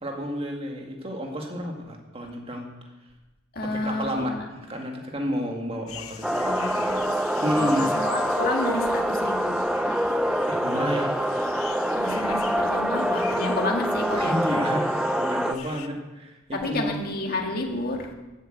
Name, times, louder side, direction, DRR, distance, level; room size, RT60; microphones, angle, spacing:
voice 1, 0.0-2.7 3.6-6.6 7.4-7.9 10.4-11.2 14.2-17.0, equal, 25° right, 1 dB, 1.9 m, -30 dB
voice 2, 3.5-4.4 6.4-7.1 7.5-9.5 11.9-14.6 16.5-18.1, left 2 dB, 45° left, 1 dB, 1.8 m, -30 dB
sound 1, 5.9-15.9, left 8 dB, 90° left, 0.8 m, -44 dB
sound 2, 6.2-15.5, equal, 5° right, 0.4 m, -25 dB
12.0 x 8.3 x 7.9 m, 1.1 s
head